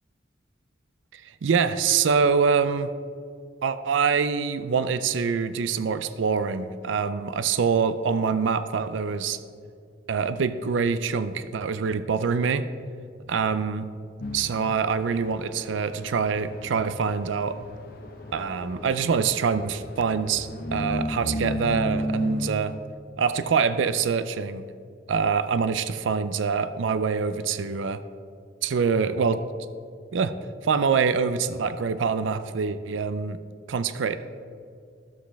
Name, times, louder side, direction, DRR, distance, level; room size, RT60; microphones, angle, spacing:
voice 1, 1.1-2.9 3.6-9.4 10.1-12.7 13.3-13.9 14.3-17.6 18.3-22.7 23.2-24.6 25.1-28.0 28.6-29.4 30.1-30.3 30.6-33.4 33.7-34.2, right 5 dB, 85° right, 12 dB, 0.4 m, -25 dB
sound 1, 14.2-22.5, equal, 55° left, 0.9 m, -34 dB
13.0 x 7.4 x 3.4 m, 2.3 s
head